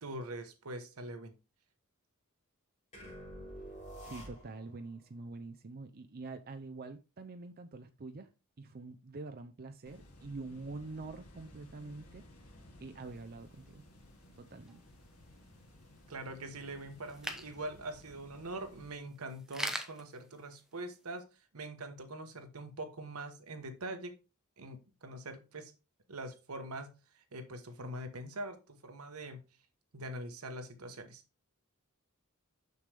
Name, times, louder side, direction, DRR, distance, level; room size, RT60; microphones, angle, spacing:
voice 1, 0.0-1.3 16.1-21.3 21.5-24.2 24.6-25.7 26.1-29.4 29.9-31.2, right 1 dB, 80° right, 1.2 m, -43 dB
sound 1, 2.9-4.8, equal, 35° left, 4.4 m, -48 dB
voice 2, 4.0-8.3 8.6-12.3 12.8-13.8 14.4-14.8, right 3 dB, 45° right, 0.6 m, -46 dB
sound 2, 9.9-18.9, left 1 dB, 85° left, 2.1 m, -57 dB
sound 3, 13.0-21.2, right 1 dB, 5° right, 0.8 m, -47 dB
6.7 x 6.6 x 3.4 m
head